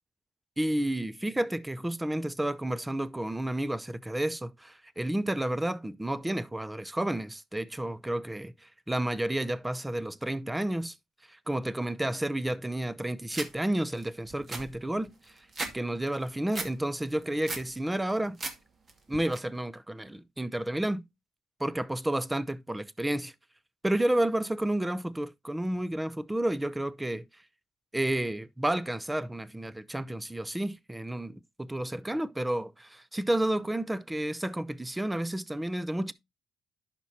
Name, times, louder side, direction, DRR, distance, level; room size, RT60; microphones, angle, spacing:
voice 1, 0.6-10.9 11.3-15.3 15.7-18.4 19.1-21.0 21.6-23.3 23.8-27.2 27.9-36.1, right 1 dB, 10° right, 0.6 m, -31 dB
sound 1, 13.3-13.5 14.0-14.1 14.3-15.7 16.1-16.7 17.1-17.7 18.1-18.6 18.9-19.4, right 3 dB, 40° right, 1.9 m, -36 dB
11.0 x 5.8 x 2.7 m
cardioid pair, 90°, 0 cm